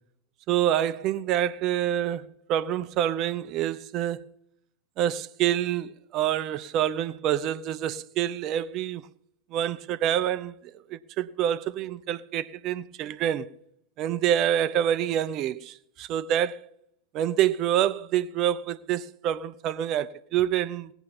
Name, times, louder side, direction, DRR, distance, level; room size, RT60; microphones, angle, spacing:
voice 1, 0.5-4.2 5.0-9.1 9.5-10.5 10.9-13.5 14.0-16.6 17.1-20.9, right 11 dB, 35° right, 0.8 m, -27 dB
18.5 x 9.2 x 5.5 m
figure-of-eight pair, 90°, 0 cm